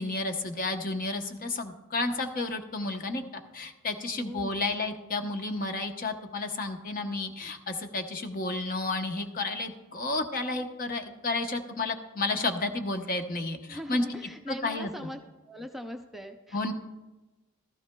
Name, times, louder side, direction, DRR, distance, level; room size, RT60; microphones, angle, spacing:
voice 1, 0.0-14.0 14.5-14.9 16.5-16.7, left 2 dB, 45° left, 5 dB, 0.9 m, -31 dB
voice 2, 4.1-4.7 13.7-15.2 15.4-16.7, equal, ahead, 3 dB, 0.4 m, -41 dB
15.5 x 14.0 x 2.2 m, 1.1 s
head